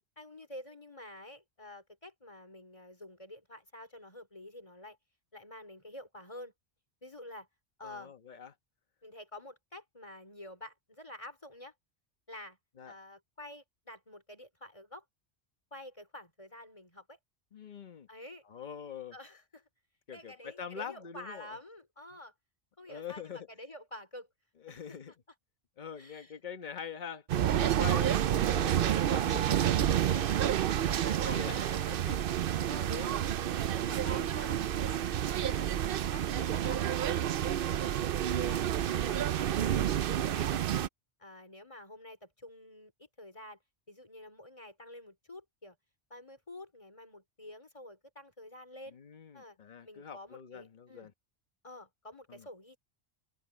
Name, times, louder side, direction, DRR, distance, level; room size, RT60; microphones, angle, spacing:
voice 1, 0.2-5.0 5.3-6.5 7.0-7.5 7.8-8.1 9.0-11.7 12.3-12.6 12.8-15.0 15.7-17.2 18.1-18.5 19.1-19.7 20.1-22.3 22.8-24.3 24.7-25.0 26.0-26.3 27.8-28.1 30.1-30.4 30.8-31.9 32.6-33.2 33.7-35.1 35.4-37.9 38.5-39.8 40.1-40.7 41.2-43.6 43.9-45.8 46.1-49.0 49.3-49.6 49.8-51.1 51.6-52.8, left 1 dB, 30° left, 4.0 m, -49 dB
voice 2, 7.8-8.5 12.8-12.9 17.5-18.1 18.5-19.2 20.1-21.6 22.9-23.5 24.6-25.1 25.8-30.3 30.8-32.3 34.1-34.4 38.9-39.2 48.9-51.1 52.3-52.5, left 7 dB, 45° left, 1.2 m, -44 dB
sound 1, 27.3-40.9, right 10 dB, 60° right, 0.7 m, -29 dB
omnidirectional pair, 1.1 m